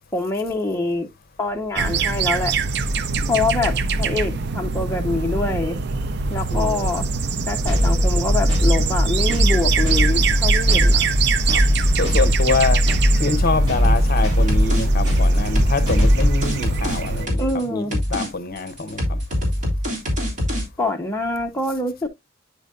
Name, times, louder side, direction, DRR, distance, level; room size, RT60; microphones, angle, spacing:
voice 1, 0.1-1.1 1.4-2.6 3.3-5.8 6.3-7.1 7.5-11.1 17.4-17.9 20.8-22.1, left 2 dB, 15° left, 0.8 m, -25 dB
sound 1, 1.8-17.3, right 4 dB, 60° right, 0.5 m, -24 dB
voice 2, 6.5-7.0 9.8-10.4 11.5-11.6 12.0-12.8 13.2-19.2, left 4 dB, 50° left, 0.8 m, -26 dB
sound 2, 7.7-16.4, equal, 20° right, 4.3 m, -19 dB
sound 3, 13.8-14.2 14.5-14.9 15.1-17.6 17.9-18.3 18.6-20.7, equal, 40° right, 3.2 m, -24 dB
9.3 x 5.1 x 2.4 m
head